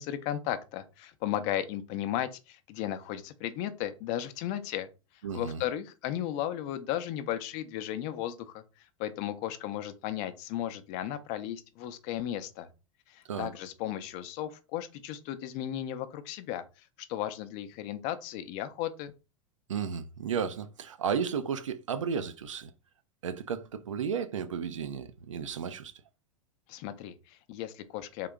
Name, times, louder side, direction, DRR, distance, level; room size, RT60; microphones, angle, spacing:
voice 1, 0.0-4.9 5.3-8.6 9.0-12.7 13.1-19.1 26.7-28.3, left 12 dB, 40° left, 0.6 m, -35 dB
voice 2, 5.2-5.6 13.3-13.5 19.7-22.7 23.2-25.9, right 7 dB, 70° right, 0.5 m, -33 dB
3.7 x 2.8 x 3.5 m
figure-of-eight pair, 90°, 17 cm